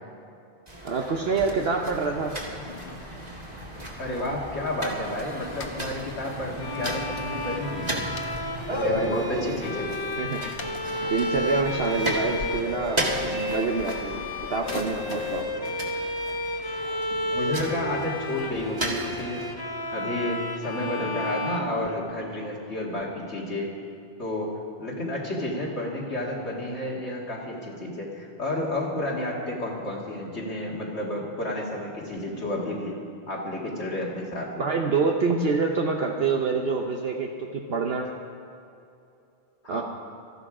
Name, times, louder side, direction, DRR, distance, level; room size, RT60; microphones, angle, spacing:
sound 1, 0.7-19.5, right 1 dB, 35° right, 2.1 m, -35 dB
voice 1, 0.8-2.3 8.7-9.5 10.2-10.4 11.1-14.2 14.5-15.6 34.6-38.1 39.7-39.8, right 4 dB, 60° right, 1 dB, 1.1 m, -27 dB
sound 2, 1.8-15.4, left 3 dB, 50° left, 1.2 m, -43 dB
voice 2, 4.0-8.1 8.8-10.0 17.1-19.5 19.9-23.7 24.2-33.0 33.3-34.7 39.6-39.8, left 1 dB, 70° left, -4 dB, 2.2 m, -31 dB
Bowed string instrument, 6.6-22.4, left 1 dB, 20° left, 0.8 m, -32 dB
17.5 x 13.5 x 4.9 m, 2.6 s
omnidirectional pair, 1.2 m